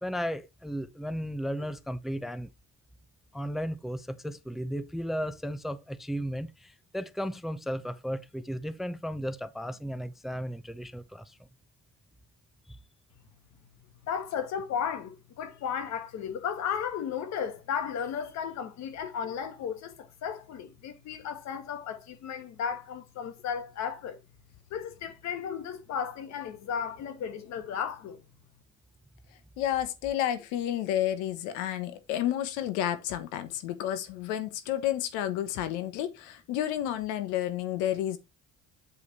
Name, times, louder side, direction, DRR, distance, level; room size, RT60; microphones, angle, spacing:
voice 1, 0.0-2.5 3.3-11.4 12.7-12.8, equal, ahead, 0.5 m, -35 dB
voice 2, 14.0-24.2 24.7-28.2, left 7 dB, 65° left, 1.8 m, -34 dB
voice 3, 29.6-38.2, left 12 dB, 80° left, 1.2 m, -30 dB
8.4 x 4.7 x 4.1 m
supercardioid pair, 95°, 30 cm